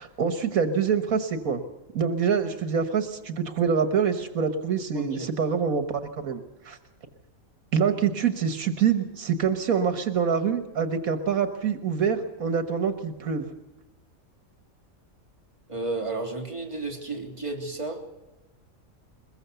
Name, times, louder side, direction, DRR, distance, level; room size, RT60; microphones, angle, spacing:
voice 1, 0.0-1.6 1.9-6.8 7.7-13.5, right 6 dB, 80° right, 9 dB, 1.7 m, -25 dB
voice 2, 4.9-5.3 15.7-18.0, right 3 dB, 20° right, 0 dB, 3.3 m, -32 dB
22.5 x 21.0 x 6.9 m, 1.0 s
omnidirectional pair, 1.5 m